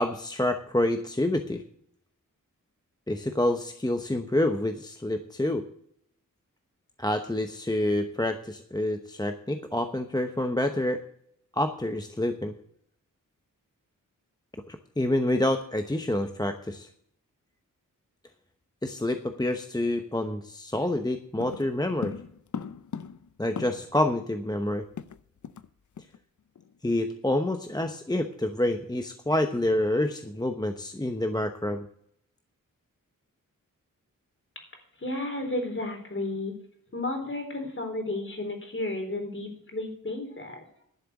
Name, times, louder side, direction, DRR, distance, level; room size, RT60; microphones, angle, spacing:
voice 1, 0.0-1.6 3.1-5.6 7.0-11.0 11.6-12.5 14.7-16.9 18.8-22.1 23.4-24.8 26.8-31.9, left 1 dB, 10° left, 6 dB, 0.9 m, -27 dB
sound 1, 21.4-24.1 24.3-24.4 24.7-25.7 26.0-26.2 26.6-26.8, left 7 dB, 60° left, 0.7 m, -39 dB
voice 2, 35.0-36.5 36.9-40.8, left 2 dB, 35° left, 4 dB, 4.0 m, -33 dB
11.5 x 6.7 x 8.2 m, 0.69 s
cardioid pair, 70°, 33 cm